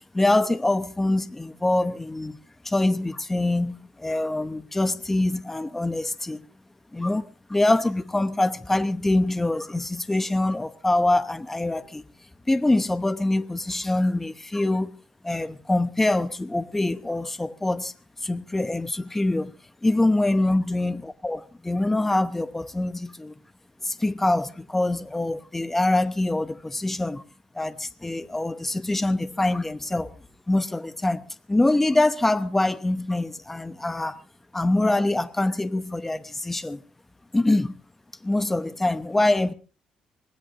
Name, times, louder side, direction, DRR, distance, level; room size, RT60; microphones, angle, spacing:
voice 1, 0.1-2.4 2.6-6.4 6.9-12.0 12.5-14.9 15.2-17.9 18.2-19.5 19.8-23.3 23.8-27.2 27.5-30.1 30.5-34.2 34.5-36.8 37.3-37.8 38.2-39.5, left 2 dB, 10° left, 0.9 m, -24 dB
24.5 x 18.5 x 2.6 m
cardioid pair, 125°, 2 cm